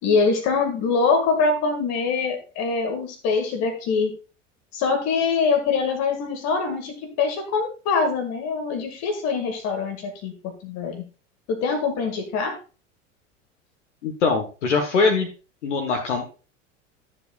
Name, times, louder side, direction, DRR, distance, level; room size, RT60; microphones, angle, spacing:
voice 1, 0.0-4.1 4.7-10.3 10.6-11.0 11.5-12.6, left 4 dB, 45° left, 4 dB, 2.0 m, -24 dB
voice 2, 14.0-15.3 15.6-16.3, left 4 dB, 65° left, 4 dB, 1.3 m, -22 dB
13.0 x 7.5 x 2.3 m, 0.34 s
figure-of-eight pair, 80°, 38 cm